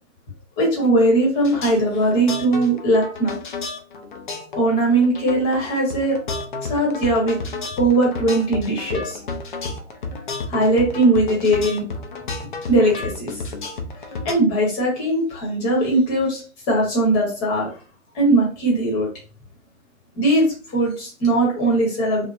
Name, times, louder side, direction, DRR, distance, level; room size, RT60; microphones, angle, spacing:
voice 1, 0.6-3.3 4.6-6.2 6.7-7.4 7.8-9.2 9.7-9.8 10.5-11.8 12.7-13.4 14.2-17.7 18.1-19.1 20.1-22.2, right 1 dB, 20° left, -3 dB, 1.0 m, -19 dB
sound 1, 1.4-14.3, left 3 dB, 40° left, 0.4 m, -31 dB
2.8 x 2.1 x 2.5 m, 0.39 s
figure-of-eight pair, 125°, 41 cm